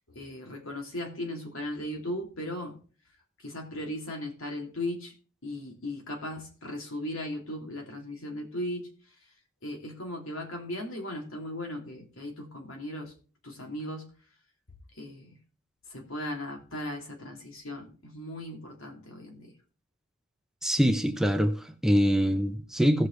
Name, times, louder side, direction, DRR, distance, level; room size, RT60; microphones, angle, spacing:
voice 1, 0.1-2.8 3.4-5.1 5.4-9.3 9.6-13.1 13.4-14.1 14.9-15.3 15.9-19.5, left 1 dB, 70° left, 2.9 m, -37 dB
voice 2, 20.6-23.1, equal, ahead, 0.7 m, -24 dB
17.0 x 6.5 x 3.3 m
head